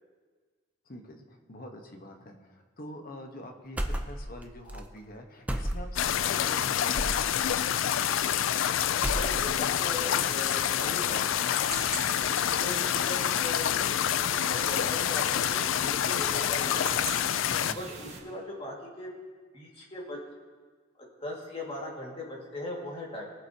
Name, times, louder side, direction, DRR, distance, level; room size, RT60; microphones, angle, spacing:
voice 1, 0.9-7.5 12.3-12.6 17.5-17.9, left 1 dB, 50° left, 4 dB, 1.1 m, -45 dB
sound 1, 3.8-4.4 4.7-4.8 5.5-6.1 6.9-7.3 8.1-8.7 8.9-9.7, equal, 10° right, 0.6 m, -32 dB
sound 2, 6.0-17.7, left 10 dB, 75° left, 0.4 m, -27 dB
voice 2, 9.1-11.3 12.0-17.0 17.5-19.1 19.5-20.2 21.0-23.2, left 1 dB, 30° left, -2 dB, 2.0 m, -40 dB
sound 3, 11.6-18.2, right 3 dB, 35° right, 1.8 m, -43 dB
22.0 x 8.0 x 2.8 m, 1.5 s
head